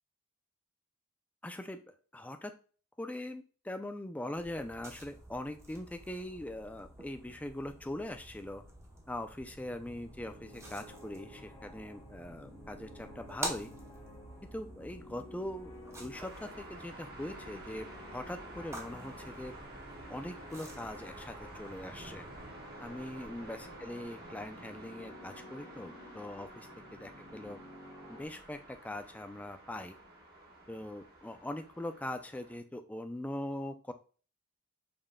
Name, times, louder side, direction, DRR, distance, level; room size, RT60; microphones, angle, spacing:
voice 1, 1.4-1.8 2.1-2.5 3.0-8.6 9.1-13.7 14.5-19.5 20.1-22.2 22.8-27.6 28.1-29.9 30.7-33.9, left 1 dB, 5° left, 7 dB, 0.3 m, -42 dB
sound 1, 4.4-22.5, right 1 dB, 15° right, 0.7 m, -49 dB
sound 2, 9.5-28.2, left 1 dB, 20° left, 1.2 m, -53 dB
sound 3, 16.1-32.6, right 1 dB, 45° right, 1.0 m, -51 dB
5.3 x 3.7 x 2.2 m, 0.39 s
head